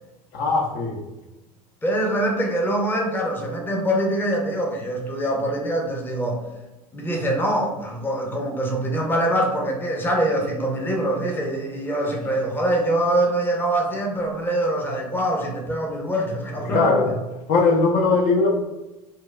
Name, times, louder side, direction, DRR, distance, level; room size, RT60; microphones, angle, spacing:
voice 1, 0.3-1.0 16.7-17.1 17.5-18.5, left 3 dB, 50° left, 0 dB, 0.6 m, -19 dB
voice 2, 1.8-6.4 6.9-16.9, right 1 dB, 10° left, 0 dB, 0.7 m, -24 dB
4.5 x 2.2 x 2.2 m, 1.0 s
hypercardioid pair, 80°, 20 cm